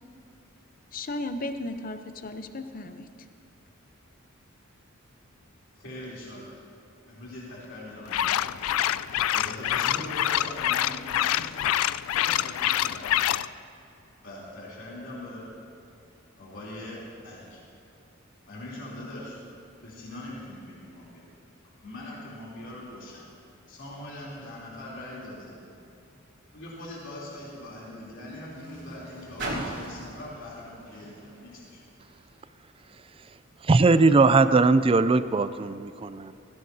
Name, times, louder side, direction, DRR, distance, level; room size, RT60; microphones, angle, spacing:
voice 1, 0.9-3.1, left 2 dB, 40° left, 8 dB, 0.7 m, -35 dB
voice 2, 5.8-6.6 7.1-8.5 9.3-11.5 12.1-13.2 14.2-15.5 16.4-17.6 18.5-19.4 19.8-21.2 21.8-23.3 23.7-25.6 26.5-31.8, left 1 dB, 65° left, -6 dB, 3.4 m, -41 dB
sound 1, 8.1-13.5, left 12 dB, 85° left, 0.3 m, -26 dB
Car, 25.8-32.4 33.2-33.3, right 1 dB, 60° right, 3.1 m, -41 dB
voice 3, 33.7-36.3, right 3 dB, 25° right, 13 dB, 0.4 m, -20 dB
19.0 x 16.0 x 2.8 m, 2.8 s
head